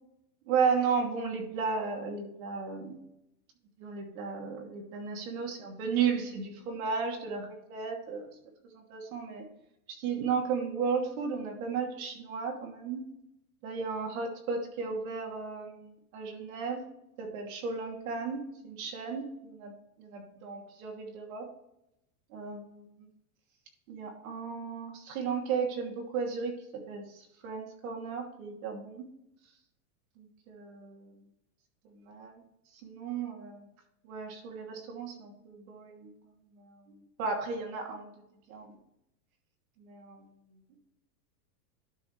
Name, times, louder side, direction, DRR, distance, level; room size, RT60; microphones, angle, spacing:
voice 1, 0.5-3.0 3.8-8.3 8.7-9.5 9.9-13.0 13.6-16.8 17.2-21.5 22.3-22.9 23.9-29.1 30.2-31.1 31.9-32.4 32.8-33.7 34.0-36.1 36.5-38.1 38.5-38.8 39.8-40.3, right 5 dB, 65° right, 1 dB, 2.8 m, -34 dB
12.0 x 5.3 x 3.3 m, 0.81 s
supercardioid pair, 150°, 46 cm